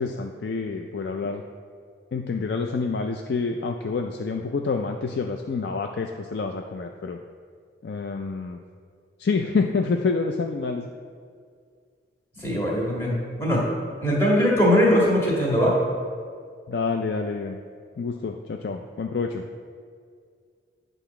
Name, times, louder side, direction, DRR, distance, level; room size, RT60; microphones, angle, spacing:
voice 1, 0.0-1.4 2.1-7.2 7.8-8.6 9.2-10.9 16.7-17.6 18.0-19.4, left 4 dB, 65° left, 4 dB, 0.4 m, -27 dB
voice 2, 12.3-13.6 14.0-15.7, equal, 15° left, -4 dB, 1.8 m, -21 dB
9.2 x 4.0 x 5.8 m, 2.1 s
head